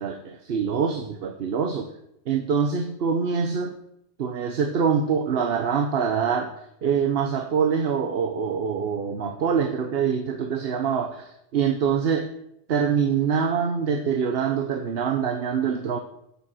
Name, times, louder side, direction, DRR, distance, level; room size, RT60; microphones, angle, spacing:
voice 1, 0.0-1.9 2.3-3.7 4.2-12.3 12.7-16.0, right 6 dB, 70° right, 6 dB, 1.0 m, -25 dB
8.4 x 7.0 x 7.5 m, 0.77 s
omnidirectional pair, 1.1 m